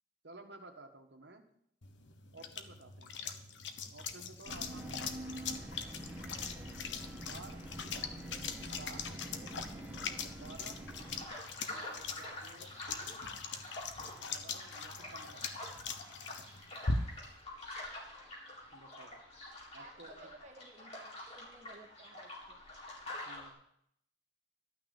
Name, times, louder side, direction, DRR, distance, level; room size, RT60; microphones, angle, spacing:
voice 1, 0.2-1.5 2.3-3.1 3.9-5.2 6.6-7.7 8.7-9.3 10.1-10.9 11.7-12.8 14.0-15.5 18.7-19.3 19.7-20.3 23.2-23.6, right 3 dB, 65° right, 5 dB, 1.6 m, -54 dB
sound 1, 1.8-17.4, left 4 dB, 75° left, 1.1 m, -42 dB
sound 2, 4.5-11.3, right 1 dB, 5° right, 2.1 m, -46 dB
voice 2, 4.5-4.9 6.3-6.7 19.7-22.6, right 1 dB, 40° right, 3 dB, 1.6 m, -57 dB
sound 3, 10.9-23.5, left 1 dB, 35° left, 4.1 m, -47 dB
12.5 x 6.0 x 9.0 m, 0.71 s
head